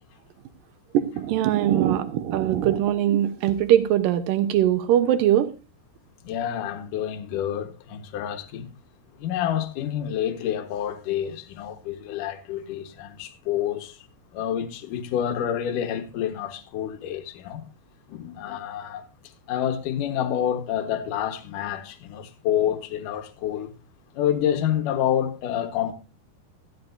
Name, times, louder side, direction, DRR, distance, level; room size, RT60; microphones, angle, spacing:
voice 1, 0.9-5.5, right 11 dB, 75° right, 2.0 m, -21 dB
voice 2, 6.2-8.7 9.2-14.0 14.3-17.7 18.1-19.0 19.5-23.7 24.1-25.9, left 10 dB, 65° left, 2.3 m, -28 dB
16.0 x 12.5 x 2.6 m
omnidirectional pair, 5.2 m